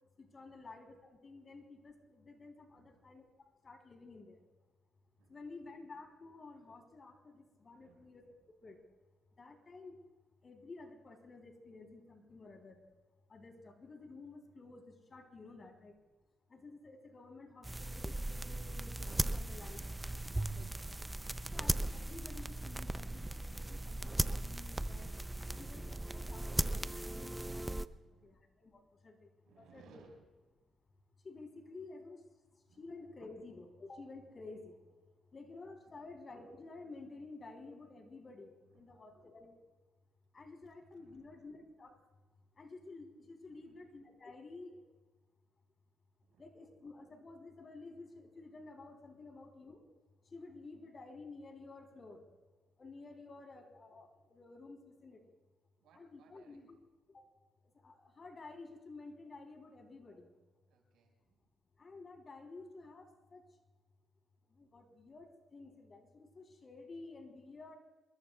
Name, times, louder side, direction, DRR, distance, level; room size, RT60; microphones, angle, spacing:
voice 1, 0.2-4.4 5.3-8.8 9.4-10.0 10.4-12.8 13.3-16.0 16.5-19.8 20.3-20.7 21.5-25.1 25.5-27.8 28.2-30.0 31.2-32.2 32.5-34.9 35.3-39.6 40.3-42.0 42.6-44.8 46.4-49.9 50.2-52.2 52.8-55.3 55.9-56.8 57.1-57.2 57.8-60.3 61.8-63.4 64.5-67.8, left 3 dB, 35° left, 3 dB, 3.5 m, -52 dB
voice 2, 5.2-5.7 7.7-8.2 15.4-15.6 27.8-28.4 29.4-30.3 32.7-32.8 35.8-36.0 38.7-39.0 41.0-41.3 43.5-43.8 46.2-46.4 49.1-49.2 55.8-56.7 60.7-61.5, right 6 dB, 85° right, 1 dB, 5.5 m, -66 dB
sound 1, 17.6-27.9, right 1 dB, 10° right, 0.5 m, -38 dB
27.5 x 21.5 x 2.4 m, 1.3 s
cardioid pair, 90°, 0 cm